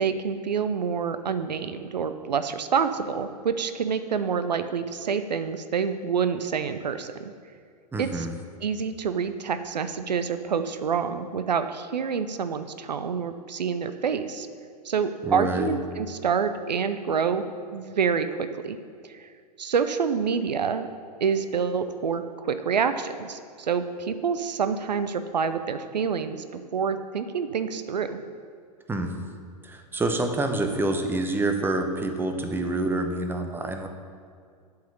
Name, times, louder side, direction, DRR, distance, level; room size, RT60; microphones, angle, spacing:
voice 1, 0.0-7.3 8.0-8.3 8.6-14.5 14.8-17.4 17.7-18.8 19.1-19.3 19.6-20.9 21.2-26.4 26.7-28.2, right 6 dB, 80° right, 10 dB, 0.5 m, -27 dB
voice 2, 7.9-8.3 15.2-15.7 28.9-29.1 29.6-33.9, right 2 dB, 10° right, 5 dB, 0.9 m, -27 dB
7.6 x 5.6 x 6.8 m, 2.2 s
figure-of-eight pair, 100°, 21 cm